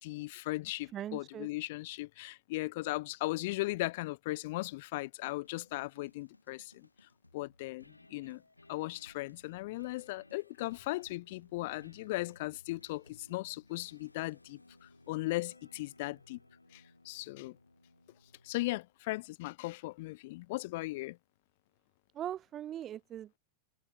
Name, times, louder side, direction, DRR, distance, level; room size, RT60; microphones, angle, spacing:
voice 1, 0.0-6.9 7.3-8.4 8.7-16.4 16.7-17.6 18.4-21.2, left 20 dB, 50° left, 0.9 m, -37 dB
voice 2, 0.9-1.5 22.1-23.4, right 11 dB, 30° right, 2.6 m, -40 dB
sound 1, 5.4-18.9, left 2 dB, 85° left, 7.7 m, -61 dB
figure-of-eight pair, 90°, 0 cm